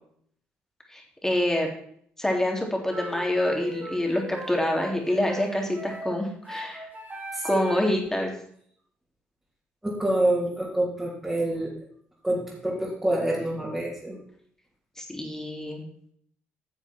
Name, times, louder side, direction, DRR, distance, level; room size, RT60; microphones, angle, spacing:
voice 1, 0.9-1.7 2.2-6.9 7.4-8.3 15.0-15.8, left 1 dB, 10° left, 1 dB, 3.3 m, -26 dB
sound 1, 2.9-8.0, right 2 dB, 35° right, 2.8 m, -38 dB
voice 2, 7.3-8.3 9.8-11.7 12.2-14.2, right 1 dB, 10° right, -6 dB, 3.7 m, -27 dB
11.0 x 7.1 x 4.5 m, 0.63 s
supercardioid pair, 60°, 5 cm